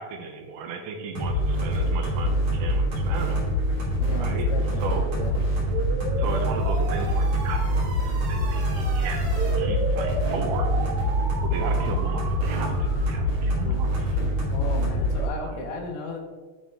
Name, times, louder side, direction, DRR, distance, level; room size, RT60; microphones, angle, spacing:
voice 1, 0.0-3.4 4.2-4.5 4.8-5.1 6.2-9.2 9.6-10.7 11.4-14.2 15.4-15.7, right 5 dB, 80° right, 5 dB, 2.2 m, -35 dB
sound 1, 1.1-15.3, equal, 45° right, 1.7 m, -25 dB
voice 2, 4.0-5.3 13.5-13.8 14.5-16.2, left 3 dB, 85° left, 3 dB, 2.3 m, -36 dB
sound 2, 5.7-13.2, right 3 dB, 65° right, 3.0 m, -34 dB
8.5 x 4.1 x 3.5 m, 1.4 s
omnidirectional pair, 3.9 m